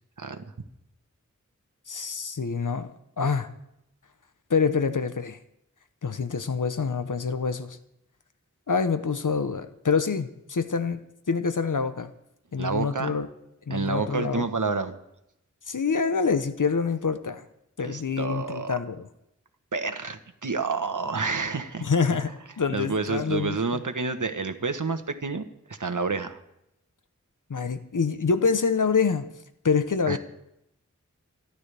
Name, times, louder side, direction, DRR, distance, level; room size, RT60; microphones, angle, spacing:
voice 1, 1.9-2.9 3.2-3.5 4.5-5.4 6.0-7.8 8.7-11.0 11.3-12.1 12.5-13.3 13.7-14.5 15.7-17.4 17.8-19.1 21.8-23.8 27.5-29.2 29.6-30.2, left 5 dB, 75° left, 10 dB, 0.9 m, -26 dB
voice 2, 12.6-13.1 13.7-15.0 17.8-18.8 19.7-21.9 22.7-26.4 30.1-30.2, right 4 dB, 75° right, 9 dB, 1.3 m, -29 dB
27.5 x 11.5 x 3.4 m, 0.82 s
wide cardioid pair, 50°, 31 cm